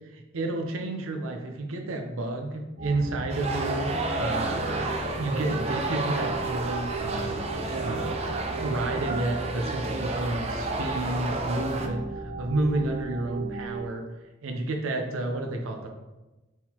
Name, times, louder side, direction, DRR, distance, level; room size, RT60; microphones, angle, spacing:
voice 1, 0.1-14.0 14.4-15.9, right 2 dB, 85° right, 3 dB, 0.6 m, -31 dB
sound 1, 2.8-13.9, right 2 dB, 55° right, 0.8 m, -36 dB
sound 2, 3.3-11.9, right 2 dB, 30° right, 0.3 m, -31 dB
4.5 x 3.7 x 2.8 m, 1.1 s
head